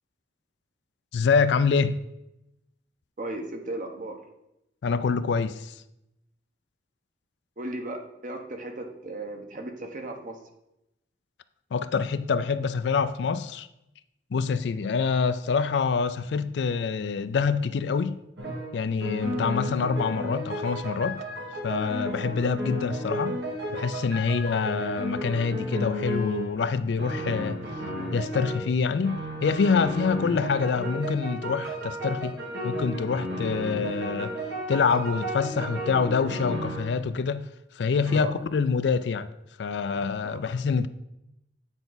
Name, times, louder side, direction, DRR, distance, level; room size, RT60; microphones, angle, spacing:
voice 1, 1.1-2.0 4.8-5.7 11.7-13.7 14.3-18.2 18.7-21.2 21.6-23.4 23.7-27.6 28.1-32.3 32.6-34.4 34.7-37.5 37.8-39.3 39.6-40.9, left 5 dB, 75° left, 0.4 m, -26 dB
voice 2, 3.2-4.2 7.6-10.3 38.1-38.3 40.2-40.4, right 2 dB, 50° right, 1.0 m, -36 dB
sound 1, 18.4-18.7 19.0-26.6 27.0-28.7 29.0-37.0 38.1-38.2, equal, 80° right, 1.7 m, -33 dB
9.0 x 4.6 x 4.0 m
head